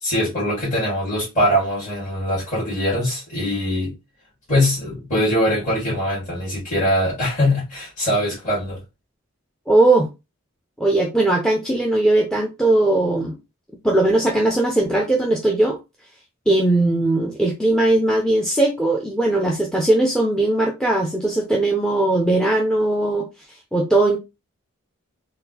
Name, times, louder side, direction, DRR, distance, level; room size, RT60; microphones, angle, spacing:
voice 1, 0.0-3.9 4.5-8.8, left 1 dB, 35° left, 1.7 m, -22 dB
voice 2, 9.7-10.1 10.8-13.4 13.8-15.8 16.5-23.2 23.7-24.2, right 2 dB, 5° left, 0.4 m, -19 dB
3.8 x 2.4 x 2.8 m
head